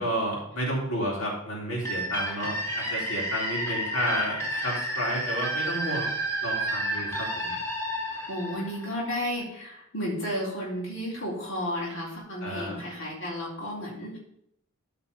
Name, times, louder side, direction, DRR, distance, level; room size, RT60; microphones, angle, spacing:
voice 1, 0.0-6.1 6.4-7.6 12.4-12.8, equal, 85° left, -4 dB, 4.3 m, -31 dB
sound 1, 1.8-9.4, right 1 dB, 15° left, 2.8 m, -31 dB
voice 2, 8.0-14.2, equal, 65° left, -5 dB, 4.2 m, -33 dB
13.5 x 5.8 x 5.6 m, 0.74 s
head